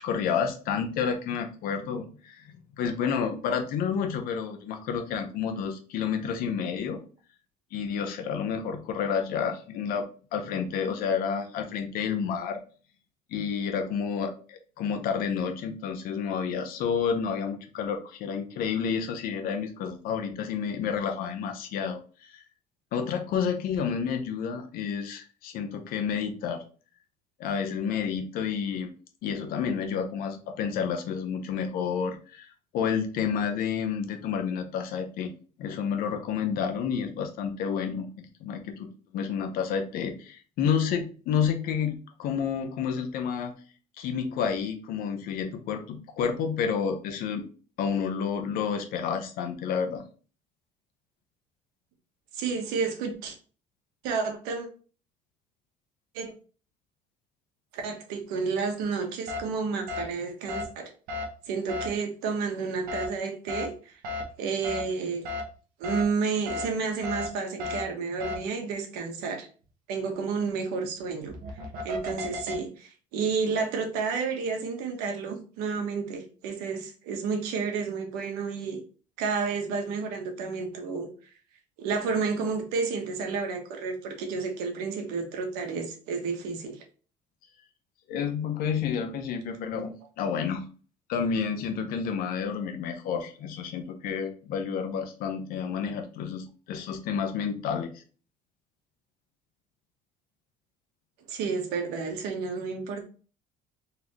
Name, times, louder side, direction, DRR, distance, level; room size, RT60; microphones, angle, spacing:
voice 1, 0.0-2.5 2.8-7.0 7.7-10.0 10.3-12.6 13.3-22.0 22.3-22.4 22.9-26.6 27.4-28.9 29.2-43.5 44.0-47.5 47.8-50.0 88.1-90.7 91.1-97.9, left 7 dB, 65° left, 6 dB, 0.9 m, -30 dB
voice 2, 52.3-53.3 54.0-54.7 56.1-56.3 57.7-60.9 61.5-64.0 64.4-65.3 65.8-69.5 69.9-71.3 71.8-78.8 79.2-81.1 81.8-86.8 101.3-103.0, right 5 dB, 90° right, 4 dB, 1.1 m, -31 dB
sound 1, 59.3-59.4 59.9-60.0 60.5-60.6 61.1-61.2 61.7-61.9 62.9-63.1 63.5-63.6 64.0-64.2 64.6-64.8 65.2-65.4 65.8-66.0 66.5-66.6 67.0-67.3 67.6-67.8 68.2-68.4 71.2-72.5, left 2 dB, 65° right, 1.1 m, -33 dB
4.1 x 3.3 x 2.9 m, 0.38 s
cardioid pair, 135°, 16 cm